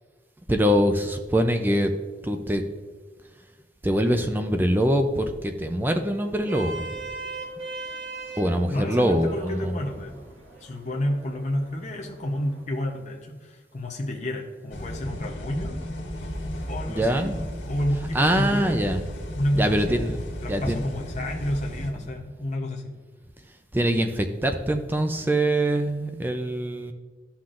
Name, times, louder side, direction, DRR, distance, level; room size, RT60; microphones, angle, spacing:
voice 1, 0.5-1.9 2.2-2.6 3.8-7.0 8.3-9.8 16.9-17.4 18.1-19.0 19.5-20.2 20.5-20.8 23.7-26.9, equal, 10° right, 5 dB, 0.4 m, -23 dB
Vehicle horn car horn honking, 6.2-12.6, right 3 dB, 90° right, 1.9 m, -40 dB
voice 2, 8.7-10.1 10.6-15.8 16.7-17.3 17.6-18.8 19.4-23.0, left 1 dB, 40° left, 0 dB, 0.8 m, -30 dB
sound 1, 14.7-21.9, equal, 80° left, 1.8 m, -34 dB
13.5 x 5.8 x 2.5 m, 1.5 s
head